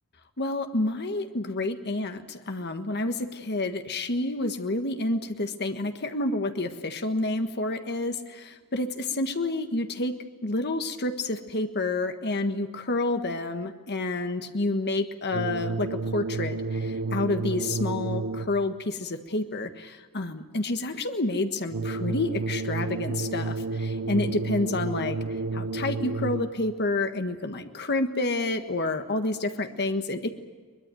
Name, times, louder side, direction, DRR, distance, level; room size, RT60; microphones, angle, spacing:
voice 1, 0.4-10.1 10.4-25.2 25.5-30.3, left 2 dB, 50° left, 7 dB, 1.5 m, -29 dB
sound 1, 15.3-18.7 21.7-26.7, right 3 dB, 65° right, 0.7 m, -31 dB
23.0 x 21.0 x 9.1 m, 1.4 s
head